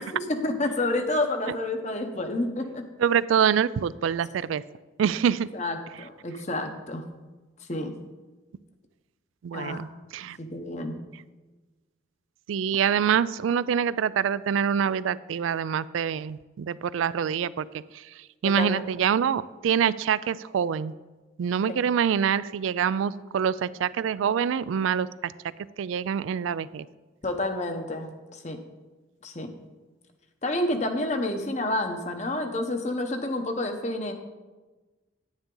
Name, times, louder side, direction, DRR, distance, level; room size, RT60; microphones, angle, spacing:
voice 1, 0.0-2.8 5.5-7.0 7.7-8.0 9.5-9.8 10.4-11.0 18.6-18.8 21.7-21.8 27.2-28.6 29.2-29.5 30.4-34.1, left 2 dB, 35° left, 6 dB, 0.8 m, -29 dB
voice 2, 3.0-4.6 5.0-5.5 9.4-9.9 10.1-10.4 12.5-18.1 18.4-20.9 21.4-25.3 25.8-26.8, right 8 dB, 80° right, 18 dB, 0.3 m, -25 dB
9.7 x 9.6 x 3.8 m, 1.2 s
head